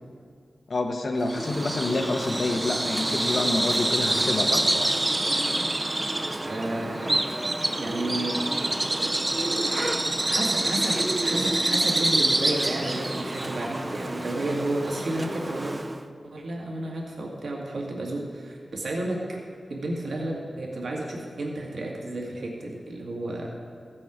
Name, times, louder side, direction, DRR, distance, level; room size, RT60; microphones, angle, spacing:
voice 1, 0.7-4.7, left 2 dB, 65° left, 4 dB, 1.1 m, -27 dB
Bird vocalization bird call bird song, 1.2-16.0, right 1 dB, 25° right, 0.5 m, -27 dB
voice 2, 6.4-7.1 7.8-8.9 10.2-15.8 16.2-19.2 19.7-23.6, right 1 dB, 80° right, -2 dB, 1.8 m, -32 dB
15.5 x 7.6 x 5.0 m, 2.1 s
wide cardioid pair, 110°, 0 cm